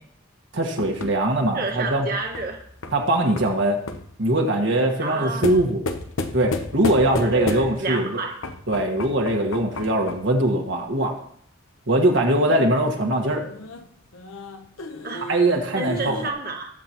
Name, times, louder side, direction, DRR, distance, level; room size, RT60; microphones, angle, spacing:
voice 1, 0.5-2.1 2.9-3.8 4.2-5.8 6.3-8.2 8.7-11.1 11.9-13.5 15.3-16.2, right 1 dB, 65° right, 1 dB, 1.6 m, -21 dB
sound 1, 0.8-4.2 5.4-8.0 8.4-10.4 12.5-16.3, left 2 dB, 80° left, 0.9 m, -33 dB
voice 2, 1.5-2.6 5.0-5.6 7.2-8.4 15.0-15.3 15.7-16.7, right 3 dB, 45° right, 0 dB, 1.6 m, -30 dB
20.0 x 7.8 x 3.0 m, 0.67 s
head